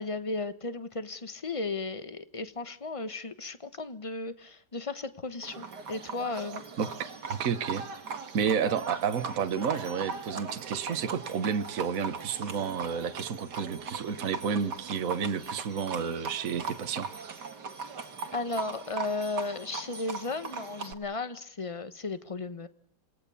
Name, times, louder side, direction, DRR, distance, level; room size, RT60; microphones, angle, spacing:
voice 1, 0.0-6.6 18.3-22.7, left 3 dB, 20° left, 12 dB, 1.2 m, -35 dB
Livestock farm animals working animals, 5.4-20.9, right 5 dB, 75° right, 2.3 m, -39 dB
voice 2, 6.8-7.8 8.3-17.3, right 6 dB, 55° right, 9 dB, 1.5 m, -31 dB
27.5 x 19.5 x 7.1 m, 0.68 s
omnidirectional pair, 1.8 m